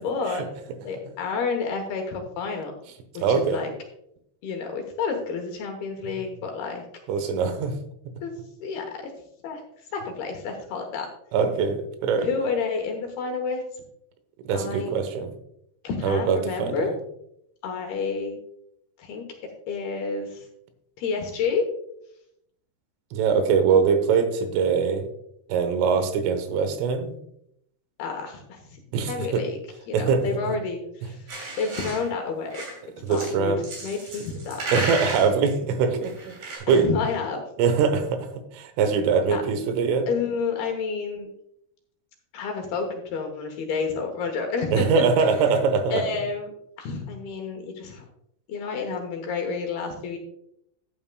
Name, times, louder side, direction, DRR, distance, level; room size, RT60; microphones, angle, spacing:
voice 1, 0.0-0.4 0.8-2.8 3.1-3.7 4.4-6.8 8.2-8.3 8.6-9.1 9.4-9.6 9.9-11.1 12.2-13.6 14.5-14.9 15.8-16.9 17.6-18.4 19.0-19.2 19.7-20.5 21.0-21.6 28.0-28.7 29.0-29.6 29.9-32.6 33.1-34.6 36.7-37.4 39.3-39.4 40.1-41.3 42.3-45.3 45.9-46.5 46.8-48.0 48.5-50.2, left 5 dB, 70° left, 3 dB, 2.6 m, -30 dB
voice 2, 3.2-3.6 7.1-7.8 11.3-12.3 14.5-15.3 16.0-17.0 23.1-25.1 25.5-27.2 28.9-29.4 29.9-30.6 33.0-33.6 34.7-36.9 37.6-40.1 44.7-46.0, right 5 dB, 90° right, 9 dB, 3.7 m, -23 dB
sound 1, 31.3-32.1 32.5-32.8 33.1-33.3 33.6-35.3 36.0-36.6, right 2 dB, 50° right, 4.9 m, -33 dB
14.5 x 8.8 x 2.3 m, 0.75 s
omnidirectional pair, 5.6 m